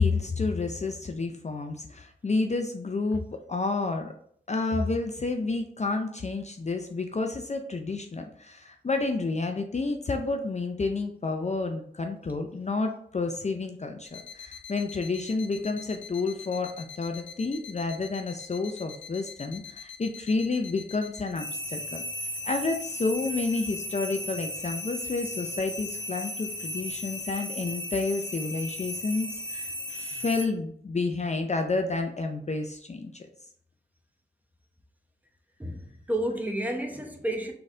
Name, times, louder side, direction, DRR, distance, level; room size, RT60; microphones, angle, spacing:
voice 1, 0.0-3.2 3.5-4.1 4.5-22.0 22.5-33.3, left 3 dB, 35° left, 4 dB, 0.5 m, -30 dB
sound 1, 14.0-30.5, left 1 dB, 80° left, 0.6 m, -37 dB
voice 2, 35.6-37.5, right 1 dB, 10° right, 2 dB, 0.9 m, -31 dB
3.9 x 3.3 x 3.7 m, 0.64 s
cardioid pair, 50°, 19 cm